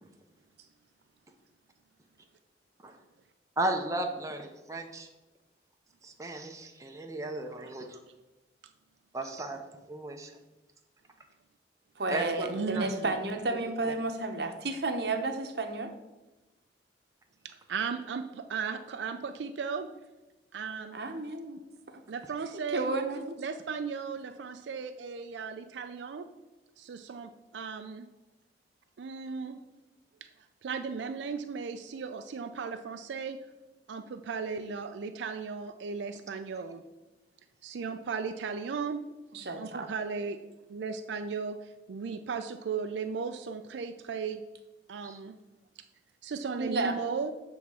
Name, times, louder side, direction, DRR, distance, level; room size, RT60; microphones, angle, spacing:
voice 1, 3.6-5.1 6.0-8.0 9.1-9.6 9.9-10.3 12.1-12.9 13.5-13.9 45.0-45.2, right 1 dB, 20° right, 3 dB, 0.6 m, -35 dB
voice 2, 12.0-15.9 20.9-21.6 21.9-22.0 22.5-23.3 39.3-39.9 46.6-46.9, right 2 dB, 60° right, 5 dB, 0.8 m, -32 dB
voice 3, 12.5-13.1 17.4-19.9 20.5-21.0 22.1-26.3 26.8-28.1 29.0-29.6 30.6-33.4 33.9-36.8 37.6-39.0 39.6-40.4 40.7-44.4 44.9-45.4 46.2-47.3, right 5 dB, 80° right, 8 dB, 0.4 m, -36 dB
7.2 x 3.5 x 6.0 m, 1.1 s
head